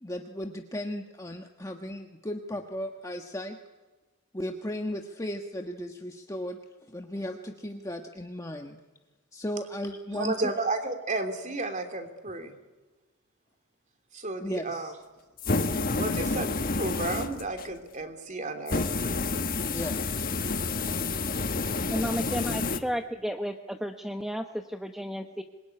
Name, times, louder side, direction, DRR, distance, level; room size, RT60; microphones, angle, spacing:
voice 1, 0.0-3.6 4.3-6.6 6.9-8.8 9.3-10.5 14.4-14.9 19.7-20.1, left 1 dB, 15° left, 3 dB, 1.3 m, -35 dB
voice 2, 10.1-12.5 14.1-14.9 15.9-19.2 20.7-21.0, right 2 dB, 35° right, 7 dB, 3.0 m, -33 dB
sound 1, 15.4-17.7 18.7-22.8, left 3 dB, 40° left, 1.4 m, -29 dB
voice 3, 21.9-25.4, equal, ahead, 5 dB, 1.0 m, -33 dB
26.0 x 22.0 x 9.8 m, 1.2 s
head